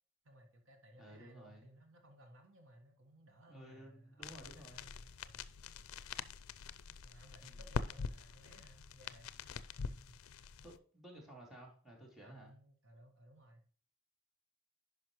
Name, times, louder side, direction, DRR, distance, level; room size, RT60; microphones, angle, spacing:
voice 1, 0.2-5.5 7.0-10.2 10.5-10.6 12.2-13.7, equal, 65° right, 4 dB, 1.4 m, -61 dB
voice 2, 1.0-1.7 3.5-4.9 7.4-7.6 10.6-12.5, right 1 dB, ahead, -4 dB, 2.8 m, -55 dB
sound 1, 4.2-10.8, left 5 dB, 80° left, 0.5 m, -44 dB
10.5 x 5.3 x 3.0 m, 0.42 s
head